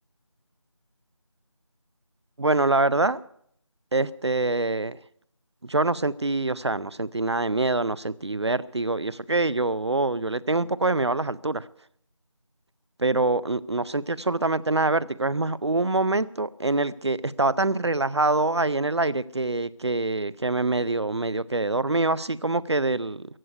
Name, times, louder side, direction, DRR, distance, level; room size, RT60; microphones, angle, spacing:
voice 1, 2.4-3.2 3.9-5.0 5.6-11.7 13.0-23.3, right 2 dB, 55° right, 18 dB, 0.6 m, -25 dB
15.0 x 8.2 x 9.4 m, 0.66 s
figure-of-eight pair, 170°, 16 cm